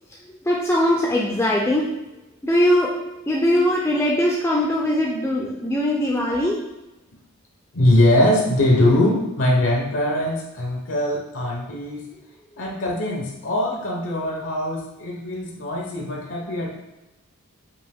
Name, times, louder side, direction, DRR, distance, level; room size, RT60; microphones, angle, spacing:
voice 1, 0.4-1.9 2.4-2.9 3.3-6.6, left 1 dB, 10° left, -2 dB, 0.4 m, -20 dB
voice 2, 7.7-12.1 12.6-16.7, left 1 dB, 60° left, -1 dB, 0.7 m, -21 dB
5.2 x 2.5 x 3.5 m, 1.0 s
head